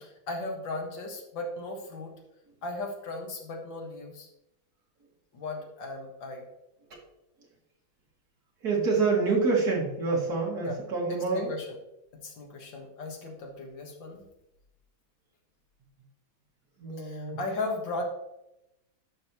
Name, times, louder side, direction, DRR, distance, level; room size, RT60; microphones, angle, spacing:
voice 1, 0.0-2.1 2.6-4.3 5.3-6.5 10.6-10.8 11.1-11.8 12.1-14.3 17.0-18.0, left 2 dB, 65° left, 1 dB, 2.2 m, -37 dB
voice 2, 8.6-11.5 16.8-17.4, right 4 dB, 50° right, -3 dB, 2.6 m, -27 dB
10.5 x 6.3 x 3.0 m, 0.89 s
omnidirectional pair, 2.2 m